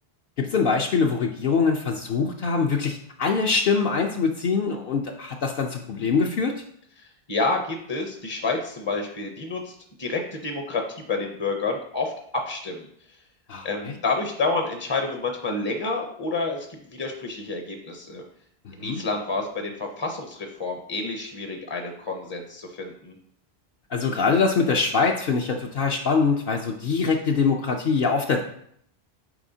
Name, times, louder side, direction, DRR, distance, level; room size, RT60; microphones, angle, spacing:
voice 1, 0.4-6.5 13.5-13.9 18.7-19.0 23.9-28.4, left 5 dB, 65° left, 1 dB, 0.7 m, -23 dB
voice 2, 7.0-12.9 13.6-18.2 18.7-23.1, left 3 dB, 30° left, 3 dB, 0.5 m, -29 dB
8.9 x 4.2 x 2.7 m, 0.69 s
omnidirectional pair, 1.0 m